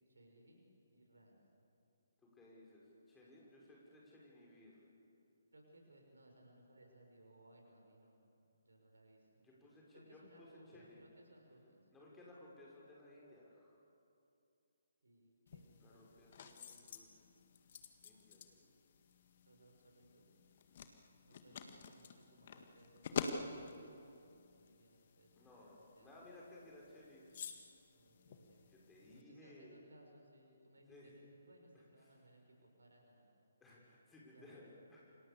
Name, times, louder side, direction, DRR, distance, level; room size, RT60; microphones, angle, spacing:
voice 1, 0.1-1.4 5.5-8.2 8.6-9.4 9.9-11.8 15.0-16.2 19.4-20.3 21.2-26.3 27.9-28.7 29.0-33.3 34.3-34.6, right 1 dB, 65° right, 2 dB, 6.3 m, -65 dB
voice 2, 2.2-4.9 9.4-11.1 11.9-13.8 15.8-17.2 18.0-18.7 21.8-21.9 25.4-27.3 28.7-29.8 30.9-31.1 32.0-32.1 33.6-35.1, left 1 dB, 10° left, -5 dB, 6.0 m, -60 dB
sound 1, 15.5-29.2, left 5 dB, 40° left, 1.9 m, -49 dB
29.0 x 26.0 x 7.1 m, 2.6 s
figure-of-eight pair, 135°, 0 cm